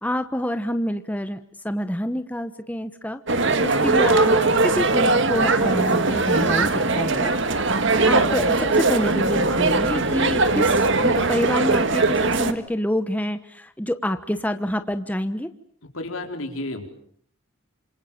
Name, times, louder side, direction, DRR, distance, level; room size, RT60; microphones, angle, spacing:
voice 1, 0.0-1.4 1.6-3.2 3.6-4.4 4.6-7.3 8.0-15.5, equal, 5° left, 9 dB, 1.1 m, -27 dB
sound 1, 3.3-12.5, right 3 dB, 60° right, 1.9 m, -20 dB
voice 2, 15.9-16.9, left 2 dB, 75° left, 4 dB, 4.6 m, -32 dB
29.0 x 27.0 x 7.3 m, 0.63 s
head